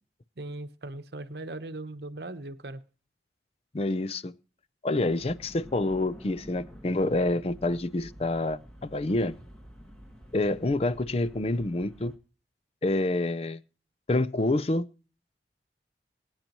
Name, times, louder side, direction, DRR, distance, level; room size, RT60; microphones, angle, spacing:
voice 1, 0.4-2.8, right 2 dB, 60° right, 0.9 m, -39 dB
voice 2, 3.7-4.3 4.8-9.4 10.3-12.1 12.8-13.6 14.1-14.9, left 2 dB, 35° left, 0.5 m, -27 dB
sound 1, 5.0-12.2, equal, 5° left, 1.8 m, -49 dB
23.5 x 8.9 x 3.0 m
head